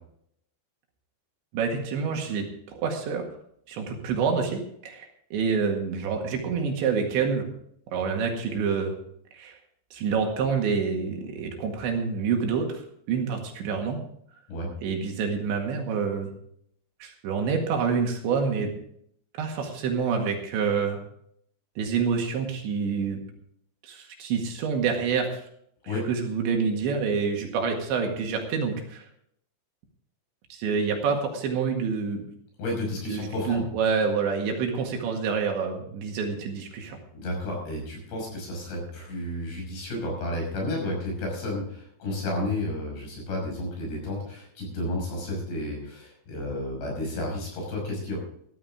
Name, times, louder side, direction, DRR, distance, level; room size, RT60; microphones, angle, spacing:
voice 1, 1.5-2.5 2.8-3.2 3.7-5.1 5.3-7.5 7.9-9.0 9.3-9.6 9.9-12.8 13.1-14.0 14.8-16.3 17.0-18.7 19.4-21.0 21.8-23.2 23.8-25.4 26.1-29.1 30.5-32.3 33.1-37.0, right 5 dB, 70° right, 2 dB, 4.1 m, -27 dB
voice 2, 32.6-33.6 37.1-48.2, left 1 dB, 60° left, 0 dB, 7.9 m, -32 dB
15.0 x 13.5 x 3.7 m, 0.68 s
omnidirectional pair, 5.5 m